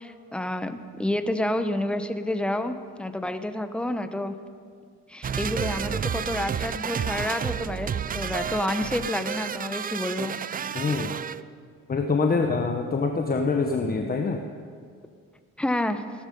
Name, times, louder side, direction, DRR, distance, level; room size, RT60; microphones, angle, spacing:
voice 1, 0.0-4.3 5.1-10.3 15.6-16.0, left 1 dB, 5° left, 9 dB, 0.8 m, -29 dB
sound 1, 5.2-11.4, right 8 dB, 30° right, 0.4 m, -31 dB
voice 2, 10.7-11.1 11.9-14.4, left 4 dB, 30° left, 3 dB, 1.0 m, -25 dB
16.5 x 13.0 x 5.3 m, 2.1 s
cardioid pair, 90°, 30 cm